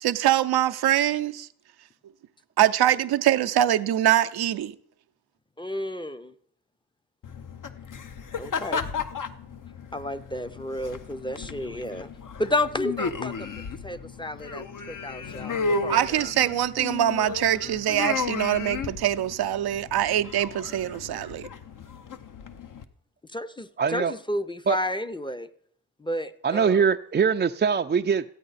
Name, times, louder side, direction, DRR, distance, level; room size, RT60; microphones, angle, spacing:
voice 1, 0.0-1.5 2.6-4.7 15.9-21.5, right 12 dB, 85° right, 0.5 m, -23 dB
voice 2, 5.6-6.3 8.4-8.9 9.9-12.1 12.4-13.5 13.8-16.3 23.3-25.5 26.0-26.9, left 1 dB, 15° left, 0.6 m, -31 dB
sound 1, 7.2-22.8, left 4 dB, 55° left, 0.8 m, -34 dB
voice 3, 23.8-24.1 24.7-24.8 26.4-28.2, right 6 dB, 30° right, 0.3 m, -22 dB
14.0 x 8.5 x 4.0 m
cardioid pair, 50°, 37 cm